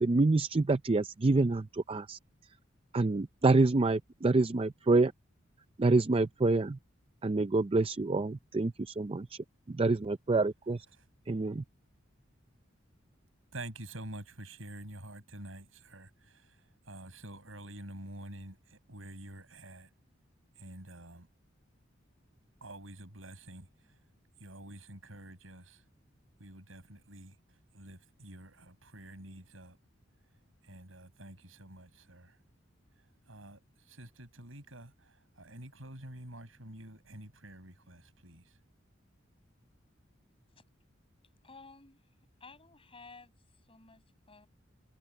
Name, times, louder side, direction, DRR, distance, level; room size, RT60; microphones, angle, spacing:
voice 1, 0.0-2.2 2.9-5.1 5.8-6.8 7.2-9.4 9.7-10.9 11.3-11.6, right 3 dB, 30° right, 0.5 m, -27 dB
voice 2, 13.5-19.9 20.5-21.3 22.6-24.0 24.4-25.8 26.4-29.8 30.6-32.4 33.0-38.6, right 1 dB, 90° right, 6.4 m, -48 dB
voice 3, 41.4-42.0 42.4-44.5, left 4 dB, 30° left, 6.7 m, -54 dB
head